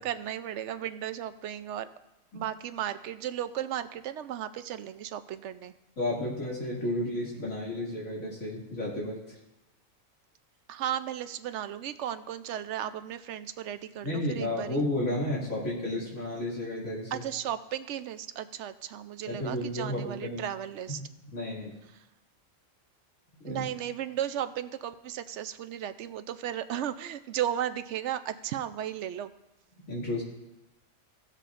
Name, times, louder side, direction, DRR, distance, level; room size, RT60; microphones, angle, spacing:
voice 1, 0.0-1.9 2.3-5.7 10.7-14.8 17.1-21.0 23.4-29.3, right 10 dB, 65° right, 11 dB, 0.8 m, -35 dB
voice 2, 6.0-9.4 14.0-17.2 19.3-20.4 20.9-21.8 23.4-23.7 29.9-30.2, left 1 dB, 80° left, -6 dB, 2.9 m, -32 dB
17.0 x 7.6 x 2.5 m, 0.98 s
omnidirectional pair, 1.4 m